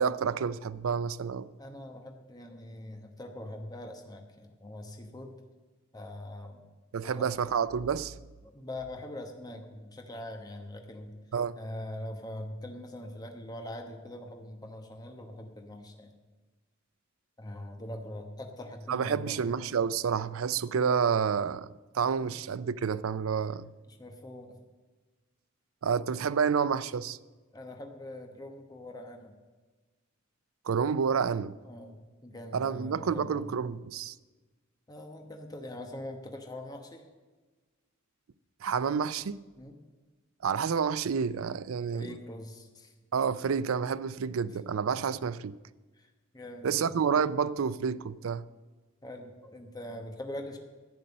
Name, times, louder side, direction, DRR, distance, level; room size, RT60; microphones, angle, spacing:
voice 1, 0.0-1.5 6.9-8.1 11.3-11.6 18.9-21.7 21.9-23.7 25.8-27.2 30.7-31.6 32.5-34.1 38.6-39.5 40.4-42.2 43.1-45.5 46.6-48.4, right 6 dB, 80° right, 0.4 m, -29 dB
voice 2, 1.6-5.3 5.9-6.6 7.0-7.2 8.4-11.2 11.6-16.2 17.4-19.5 22.2-22.3 23.9-24.6 27.5-29.4 31.6-33.6 34.9-37.0 39.6-39.8 41.9-42.9 46.0-46.9 49.0-50.6, left 1 dB, 20° left, 1.1 m, -43 dB
11.0 x 9.0 x 6.6 m
head